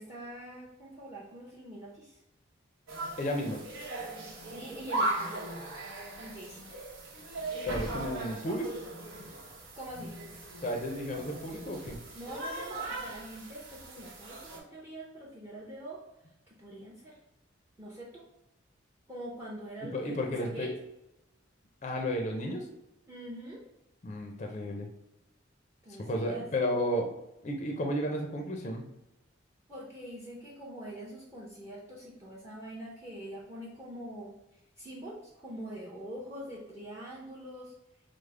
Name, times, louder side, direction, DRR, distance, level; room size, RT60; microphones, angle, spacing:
voice 1, 0.0-2.2 4.4-5.4 6.2-6.7 9.7-10.2 12.1-16.0 16.5-17.1 17.8-18.3 19.1-20.8 23.1-23.6 25.8-26.5 29.7-34.3 34.8-37.7, right 1 dB, 15° right, -4 dB, 0.5 m, -44 dB
sound 1, 2.9-14.6, right 1 dB, 90° right, 0.9 m, -38 dB
voice 2, 3.2-3.6 7.7-8.7 10.6-12.0 19.9-20.7 21.8-22.7 24.0-24.9 26.0-27.1 27.4-28.8, equal, 35° left, 2 dB, 0.4 m, -33 dB
4.8 x 2.0 x 3.2 m, 0.90 s
head